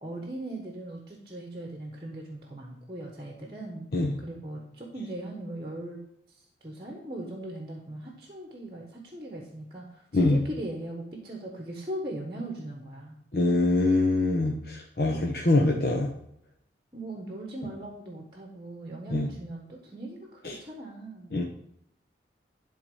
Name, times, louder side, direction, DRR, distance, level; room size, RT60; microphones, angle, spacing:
voice 1, 0.0-3.9 4.2-6.0 6.6-13.2 16.9-21.4, right 1 dB, 25° right, 0 dB, 1.3 m, -39 dB
voice 2, 13.3-16.1 19.1-19.3 20.4-20.6 21.3-21.4, left 2 dB, 55° left, -1 dB, 1.0 m, -24 dB
11.5 x 3.9 x 5.5 m, 0.73 s
head